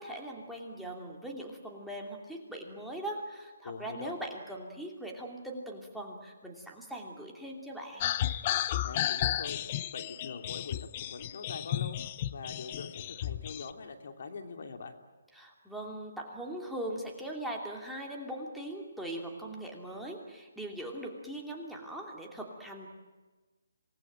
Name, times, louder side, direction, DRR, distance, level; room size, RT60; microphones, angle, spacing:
voice 1, 0.0-8.1 15.3-22.9, right 1 dB, ahead, -2 dB, 2.8 m, -40 dB
voice 2, 3.6-4.2 8.8-9.6 9.9-12.0 12.3-14.9, left 4 dB, 55° left, 5 dB, 2.9 m, -43 dB
sound 1, 8.0-13.7, left 12 dB, 30° left, 0.7 m, -33 dB
27.0 x 19.5 x 9.0 m, 1.2 s
hypercardioid pair, 160°, 0 cm